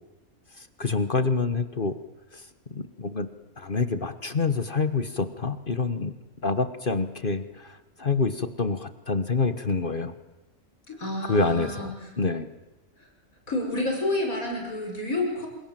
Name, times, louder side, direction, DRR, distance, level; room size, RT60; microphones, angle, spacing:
voice 1, 0.6-1.9 2.3-2.4 2.7-3.3 3.6-6.1 6.4-10.1 11.3-12.5, left 4 dB, 40° left, 11 dB, 1.4 m, -27 dB
voice 2, 10.9-12.1 13.5-15.5, left 2 dB, 80° left, 1 dB, 6.3 m, -29 dB
28.0 x 27.0 x 7.6 m, 1.0 s
omnidirectional pair, 1.4 m